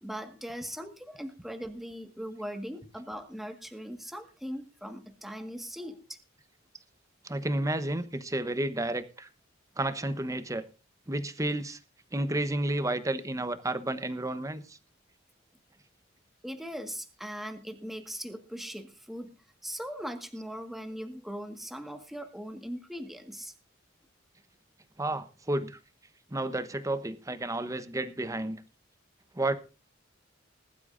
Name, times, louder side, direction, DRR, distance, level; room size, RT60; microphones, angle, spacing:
voice 1, 0.0-6.2 16.4-23.5, equal, ahead, 5 dB, 1.7 m, -40 dB
voice 2, 7.2-9.3 9.8-10.6 11.1-11.8 12.1-14.8 25.0-25.8 26.3-28.6 29.3-29.5, right 1 dB, 15° right, 12 dB, 1.0 m, -31 dB
20.5 x 12.0 x 2.6 m, 0.31 s
head